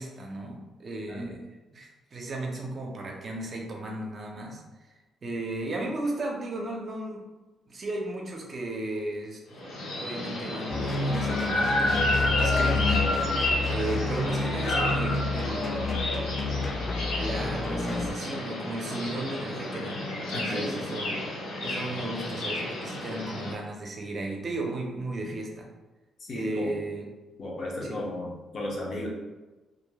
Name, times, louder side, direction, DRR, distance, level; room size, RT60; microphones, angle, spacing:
voice 1, 0.0-1.4 1.7-4.6 4.9-5.0 5.2-7.2 7.7-9.6 10.0-13.1 13.7-15.9 16.4-16.5 17.1-25.7 26.3-27.1 27.9-28.0, right 2 dB, 45° right, 0 dB, 0.5 m, -35 dB
sound 1, 9.6-23.5, left 1 dB, 90° left, 0.7 m, -30 dB
sound 2, 10.7-18.1, left 3 dB, 30° left, 0.4 m, -30 dB
voice 2, 20.3-20.8 26.2-26.7 27.4-29.1, left 1 dB, 50° left, -3 dB, 0.8 m, -34 dB
2.9 x 2.6 x 2.2 m, 1.2 s
cardioid pair, 90°, 0 cm